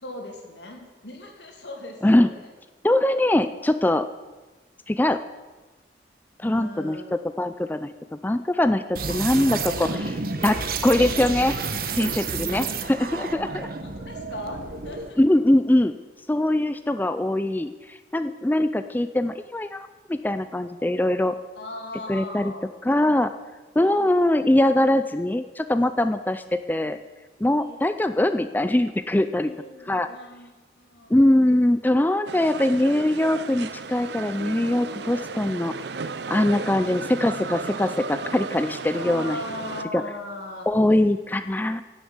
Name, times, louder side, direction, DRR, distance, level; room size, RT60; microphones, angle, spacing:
voice 1, 0.0-2.5 6.4-7.1 9.7-10.0 10.9-11.3 13.8-15.2 21.6-22.7 23.8-24.1 27.6-27.9 29.4-31.2 38.9-40.7, left 1 dB, 80° left, 2 dB, 2.7 m, -39 dB
voice 2, 2.8-4.1 4.9-5.2 6.4-11.6 12.0-13.7 15.2-16.0 16.3-21.3 22.1-22.5 22.8-23.3 23.8-27.0 27.4-29.5 29.9-30.1 31.1-35.7 36.3-39.4 39.9-40.0 40.7-41.8, left 1 dB, 10° left, 10 dB, 0.4 m, -22 dB
sound 1, 9.0-15.1, right 4 dB, 55° right, 1.1 m, -30 dB
sound 2, 32.3-39.8, right 4 dB, 75° right, 0.6 m, -34 dB
16.5 x 7.0 x 7.2 m, 1.2 s
head